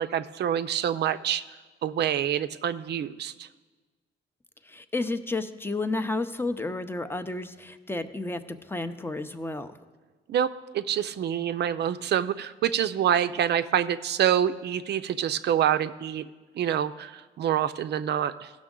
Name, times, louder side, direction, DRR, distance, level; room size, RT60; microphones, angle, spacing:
voice 1, 0.0-1.4 1.8-3.5 10.3-16.3 16.5-18.5, right 9 dB, 60° right, 11 dB, 0.4 m, -26 dB
voice 2, 4.6-9.8, left 2 dB, 10° left, 10 dB, 0.6 m, -31 dB
16.0 x 6.2 x 3.7 m, 1.3 s
cardioid pair, 90°, 20 cm